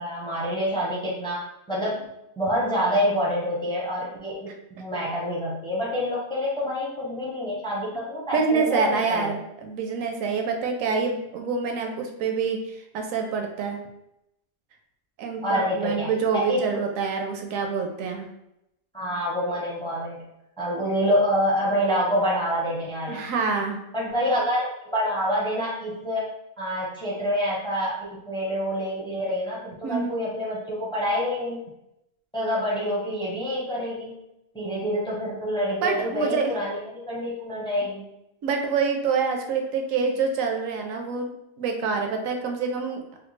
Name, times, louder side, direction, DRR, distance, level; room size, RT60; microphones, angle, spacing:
voice 1, 0.0-2.1 2.4-9.4 15.4-16.8 18.9-20.3 20.6-23.3 23.9-26.3 26.6-31.6 32.3-34.2 34.5-38.1, equal, 5° left, -5 dB, 0.5 m, -27 dB
voice 2, 8.3-13.8 15.2-18.3 23.1-23.8 29.8-30.2 35.8-36.5 38.4-43.0, right 5 dB, 70° right, 3 dB, 0.9 m, -26 dB
3.2 x 2.2 x 3.1 m, 0.84 s
omnidirectional pair, 1.5 m